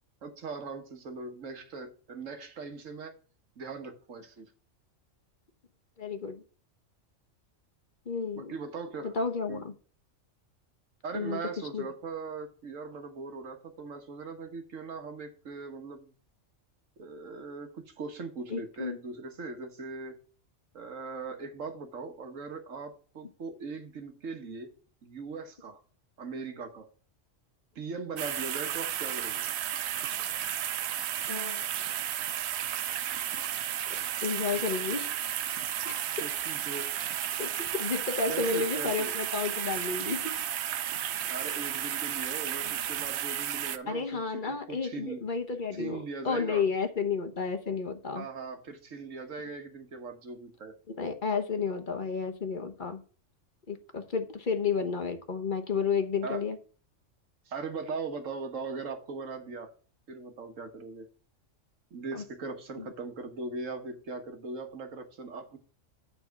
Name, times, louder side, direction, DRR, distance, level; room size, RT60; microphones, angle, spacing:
voice 1, 0.2-3.1 3.6-4.5 8.3-9.1 9.5-9.6 11.0-16.1 17.0-20.2 20.7-24.7 25.0-25.8 26.2-26.9 27.7-29.5 36.2-36.9 38.3-39.1 41.3-45.2 45.7-46.6 48.1-50.8 56.2-56.4 57.5-59.7 60.1-61.1 61.9-65.6, right 4 dB, 90° right, 1.7 m, -40 dB
voice 2, 6.0-6.4 8.1-8.5 9.0-9.7 11.1-11.4 11.7-11.9 18.5-19.0 31.3-31.6 33.9-35.1 35.8-36.0 37.4-40.4 43.9-48.2 50.9-53.0 53.7-56.6 62.1-62.2 62.8-62.9, left 5 dB, 45° left, 1.1 m, -32 dB
sound 1, 28.2-43.8, right 10 dB, 65° right, 0.8 m, -33 dB
9.5 x 4.2 x 5.7 m
omnidirectional pair, 1.3 m